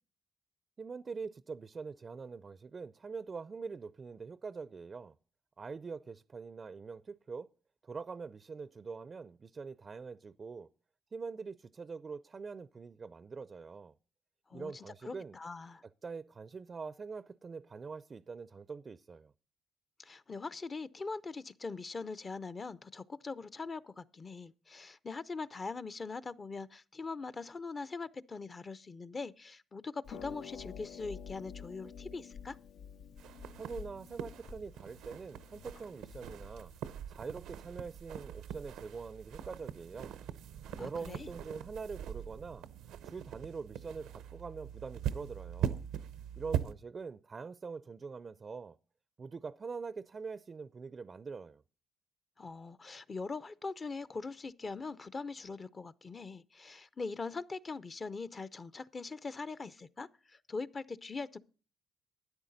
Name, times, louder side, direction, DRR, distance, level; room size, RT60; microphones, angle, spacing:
voice 1, 0.8-5.2 5.6-7.5 7.8-10.7 11.1-14.0 14.5-15.4 16.0-19.3 33.6-36.7 37.1-40.2 40.8-42.6 43.0-45.8 46.4-48.8 49.2-51.6, right 5 dB, 35° right, 0.4 m, -44 dB
voice 2, 14.5-15.8 20.0-32.6 40.8-41.3 52.4-61.4, left 4 dB, 35° left, 0.6 m, -42 dB
Harp, 30.0-36.8, left 7 dB, 75° left, 0.6 m, -49 dB
sound 1, 33.2-46.7, right 10 dB, 90° right, 0.7 m, -42 dB
12.5 x 10.0 x 4.0 m
cardioid pair, 90°, 0 cm